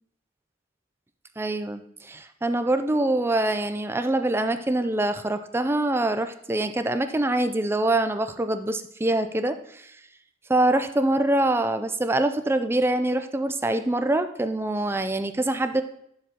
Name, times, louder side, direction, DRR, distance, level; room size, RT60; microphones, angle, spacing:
voice 1, 1.4-9.9 10.5-15.8, right 1 dB, 10° right, 8 dB, 0.4 m, -24 dB
10.0 x 7.1 x 2.9 m, 0.71 s
head